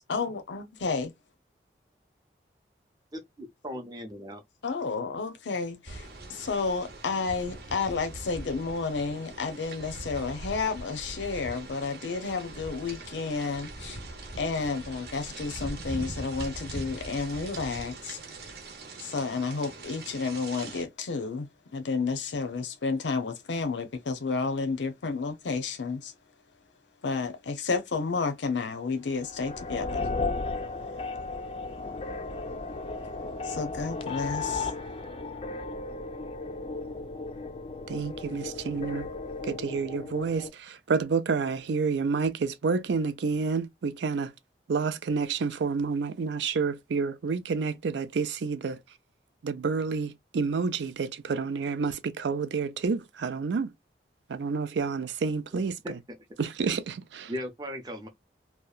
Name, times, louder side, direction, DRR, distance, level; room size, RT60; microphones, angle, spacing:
voice 1, 0.1-1.1 4.6-14.0 14.4-18.2 19.0-26.1 27.0-30.1 33.4-34.7, left 4 dB, 85° left, 0.6 m, -31 dB
voice 2, 3.1-4.4 55.5-56.2 57.3-58.1, equal, 20° right, 0.5 m, -38 dB
sound 1, 5.9-20.8, right 2 dB, 65° right, 0.8 m, -41 dB
sound 2, 29.2-40.5, left 3 dB, 30° left, 0.3 m, -35 dB
voice 3, 37.9-39.1 39.4-44.3 44.7-48.8 49.4-53.7 54.3-56.0 56.4-57.3, right 5 dB, 80° right, 0.4 m, -29 dB
2.8 x 2.2 x 2.3 m
head